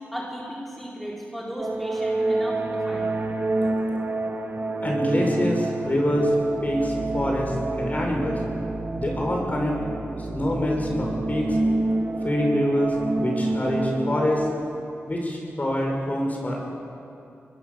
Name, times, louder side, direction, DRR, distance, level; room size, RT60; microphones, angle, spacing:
voice 1, 0.1-3.3, equal, 5° left, -4 dB, 4.7 m, -35 dB
sound 1, 1.6-14.5, right 2 dB, 40° right, 1.9 m, -28 dB
voice 2, 4.8-6.3 6.6-8.4 9.0-9.8 10.3-11.6 12.2-14.5 15.1-16.7, left 1 dB, 35° left, 0 dB, 6.3 m, -25 dB
24.0 x 21.0 x 7.2 m, 2.6 s
cardioid pair, 60°, 5 cm